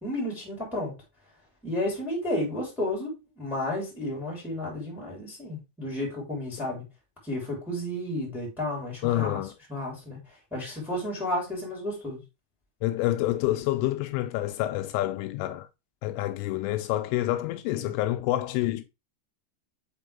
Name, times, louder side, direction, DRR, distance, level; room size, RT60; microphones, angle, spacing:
voice 1, 0.0-0.9 1.6-6.8 7.2-9.4 9.7-10.2 10.5-12.2 17.7-17.9, left 1 dB, ahead, 2.4 m, -32 dB
voice 2, 9.0-9.6 12.8-15.7 16.0-18.8, left 15 dB, 85° left, 3.0 m, -28 dB
5.8 x 5.5 x 3.4 m
omnidirectional pair, 5.7 m